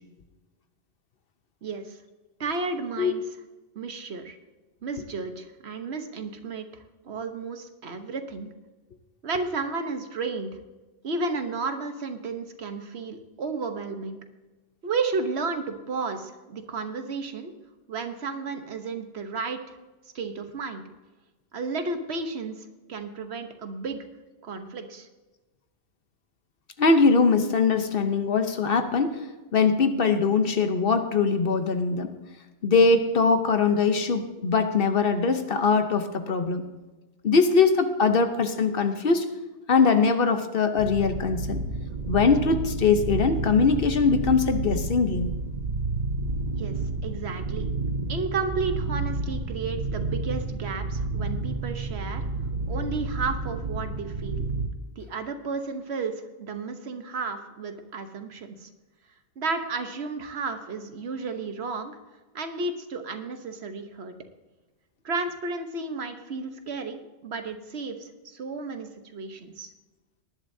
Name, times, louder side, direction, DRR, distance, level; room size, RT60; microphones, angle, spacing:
voice 1, 1.6-2.0 2.4-3.2 3.7-4.4 4.8-8.5 9.2-10.6 11.0-14.2 14.8-17.5 17.9-19.8 20.1-20.8 21.5-24.0 24.4-25.1 46.6-47.7 48.1-52.2 52.7-54.5 55.0-58.7 59.4-62.0 62.3-64.1 65.0-69.7, right 4 dB, 70° right, 7 dB, 1.2 m, -33 dB
voice 2, 26.8-29.2 29.5-32.1 32.6-36.6 37.2-39.3 39.7-41.6 42.1-45.3, left 4 dB, 55° left, 8 dB, 1.0 m, -22 dB
sound 1, 40.8-54.7, right 3 dB, 45° right, 0.7 m, -30 dB
18.5 x 11.5 x 2.7 m, 1.2 s
omnidirectional pair, 1.1 m